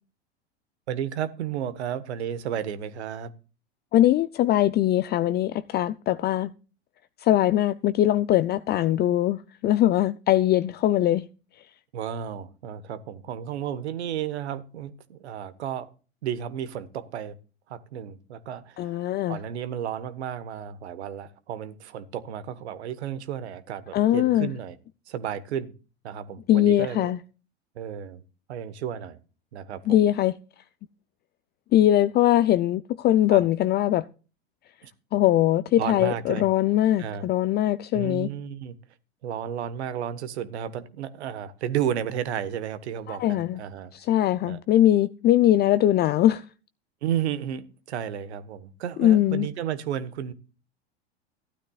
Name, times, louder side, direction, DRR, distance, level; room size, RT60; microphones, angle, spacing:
voice 1, 0.9-3.3 11.9-15.9 16.2-17.4 17.7-19.0 19.3-24.8 25.1-25.7 26.0-27.1 27.7-28.2 28.5-29.2 29.5-30.0 33.3-33.4 34.8-34.9 35.8-36.5 37.0-37.3 37.9-38.7 39.2-43.9 44.5-44.6 47.0-50.3, right 9 dB, 75° right, 1.3 m, -32 dB
voice 2, 3.9-6.5 7.2-11.2 18.8-19.4 23.9-24.5 26.5-27.2 29.9-30.3 31.7-34.1 35.1-38.3 43.1-43.6 43.9-46.4 49.0-49.5, left 13 dB, 30° left, 0.5 m, -21 dB
15.0 x 12.5 x 2.4 m
hypercardioid pair, 100°, 33 cm